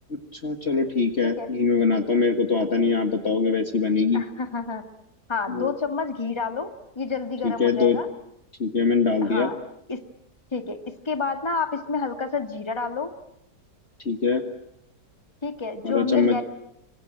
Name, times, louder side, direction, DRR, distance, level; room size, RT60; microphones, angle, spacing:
voice 1, 0.1-4.2 5.5-5.7 7.4-8.0 8.6-9.5 14.1-14.4 15.8-16.4, left 4 dB, 40° left, 6 dB, 1.9 m, -23 dB
voice 2, 4.1-4.8 5.3-6.7 7.0-8.1 9.2-9.6 9.9-10.0 10.5-10.8 11.1-13.1 15.4-16.4, left 4 dB, 15° left, 6 dB, 2.0 m, -29 dB
26.5 x 24.5 x 9.0 m, 0.80 s
omnidirectional pair, 1.9 m